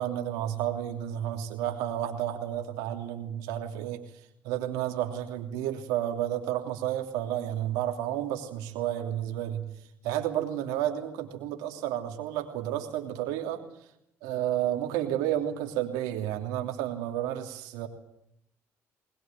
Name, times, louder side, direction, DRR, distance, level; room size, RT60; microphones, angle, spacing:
voice 1, 0.0-4.0 4.4-9.6 10.0-13.6 14.2-17.9, right 11 dB, 85° right, 5 dB, 3.1 m, -31 dB
21.5 x 20.5 x 9.1 m, 0.77 s
supercardioid pair, 65°, 6 cm